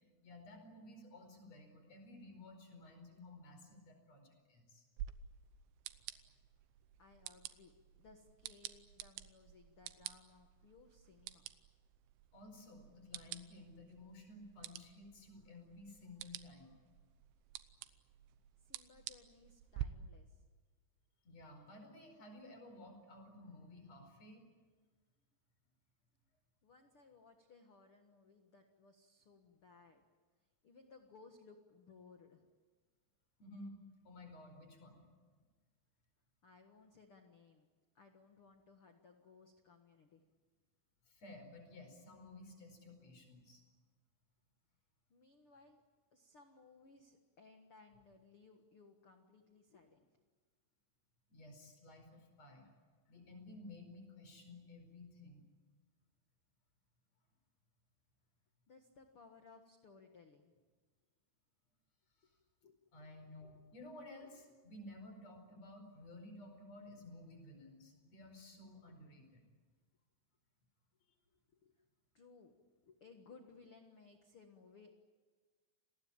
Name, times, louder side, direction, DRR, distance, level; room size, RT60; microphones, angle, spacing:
voice 1, 0.2-4.8 12.3-16.8 21.2-24.4 33.4-33.8 34.0-35.1 41.0-43.6 51.3-52.7 53.1-55.4 62.2-62.3 62.9-69.4, left 2 dB, 35° left, 5 dB, 5.7 m, -55 dB
sound 1, 5.0-19.9, right 13 dB, 85° right, 3.3 m, -51 dB
voice 2, 7.0-7.7 8.0-11.5 18.6-20.4 26.6-30.0 30.4-32.5 36.4-37.7 37.9-40.2 45.1-45.8 46.1-50.2 58.7-60.5 62.6-62.8 68.9-69.0 71.3-71.8 72.1-74.9, left 4 dB, 75° left, 5 dB, 1.2 m, -62 dB
29.0 x 19.5 x 8.8 m, 1.4 s
omnidirectional pair, 5.1 m